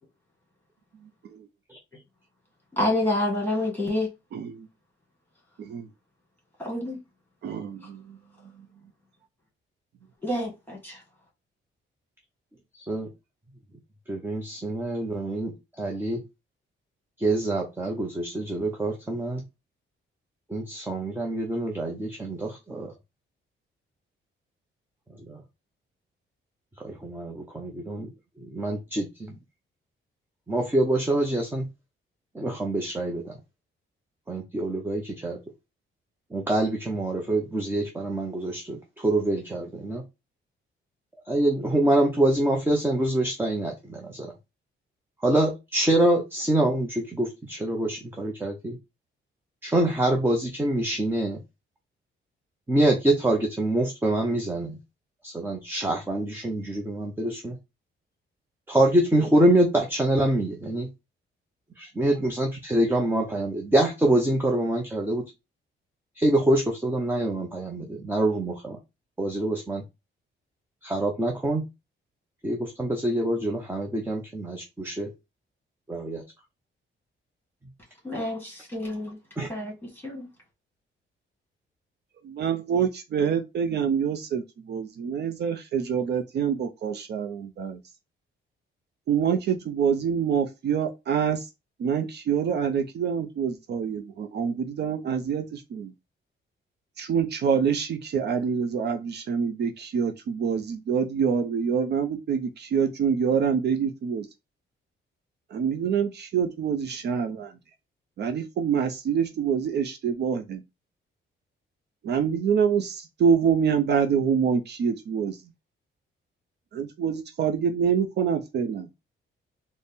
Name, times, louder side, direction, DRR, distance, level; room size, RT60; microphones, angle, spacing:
voice 1, 2.8-4.1 6.6-7.0 10.2-11.0 78.0-79.2 79.5-79.7 80.0-80.3, left 1 dB, 10° left, 1.8 m, -28 dB
voice 2, 4.3-4.7 5.6-5.9 7.4-8.2 82.2-87.8 89.1-91.5 91.8-95.9 97.0-104.3 105.5-107.5 108.2-110.6 112.0-115.4 116.7-118.9, right 7 dB, 55° right, 0.5 m, -26 dB
voice 3, 14.1-16.2 17.2-19.4 20.5-22.9 25.1-25.4 26.8-28.1 28.4-29.4 30.5-31.7 32.3-33.4 34.3-35.4 36.3-40.0 41.3-44.3 45.2-48.8 49.6-51.4 52.7-54.8 55.2-57.6 58.7-60.9 61.8-65.2 66.2-68.8 69.2-69.8 70.8-71.7 72.4-75.1 75.9-76.2 79.4-79.5, right 1 dB, 10° right, 0.6 m, -25 dB
4.0 x 2.0 x 3.5 m
cardioid pair, 145°, 21 cm